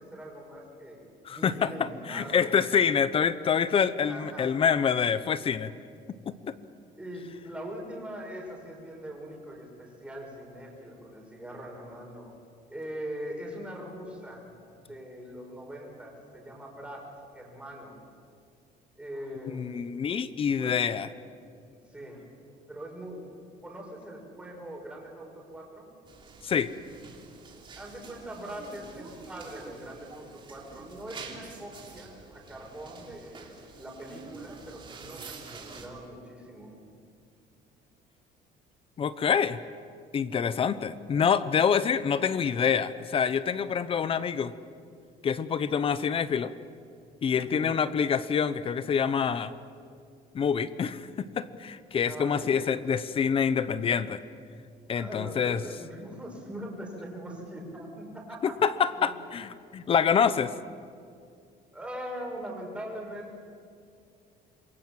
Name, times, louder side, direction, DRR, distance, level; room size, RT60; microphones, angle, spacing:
voice 1, 0.0-2.6 4.0-4.6 7.0-12.3 12.7-14.5 14.8-17.0 17.3-18.0 19.0-19.8 20.6-20.7 21.9-22.3 22.7-23.3 23.6-25.9 27.7-36.9 47.3-47.8 52.0-52.8 54.9-58.6 58.9-59.1 61.7-63.4, equal, 5° right, -1 dB, 5.6 m, -42 dB
voice 2, 1.2-5.7 6.3-6.5 19.5-21.1 26.4-26.7 39.0-39.6 40.1-44.5 45.2-46.5 47.2-49.5 50.3-54.2 54.9-55.6 58.4-60.5, left 7 dB, 30° left, 15 dB, 0.8 m, -26 dB
sound 1, 26.1-35.9, right 4 dB, 30° right, 3.1 m, -47 dB
27.0 x 23.0 x 7.4 m, 2.3 s
cardioid pair, 160°, 18 cm